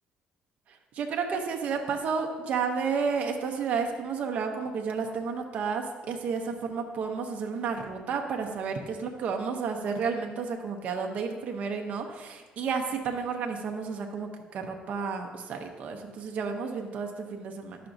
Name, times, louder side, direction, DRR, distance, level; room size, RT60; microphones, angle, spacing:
voice 1, 0.7-17.8, right 5 dB, 55° right, 3 dB, 0.7 m, -31 dB
11.0 x 5.8 x 2.6 m, 1.3 s
cardioid pair, 130°, 3 cm